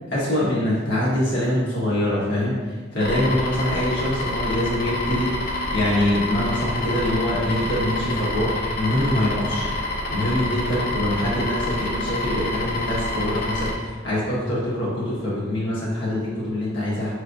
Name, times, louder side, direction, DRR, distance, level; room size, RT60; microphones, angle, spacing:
voice 1, 0.1-9.7 10.1-17.1, left 1 dB, 70° left, -8 dB, 1.4 m, -24 dB
sound 1, 3.0-13.7, left 1 dB, 55° left, 0.7 m, -27 dB
5.7 x 3.1 x 2.6 m, 1.4 s
head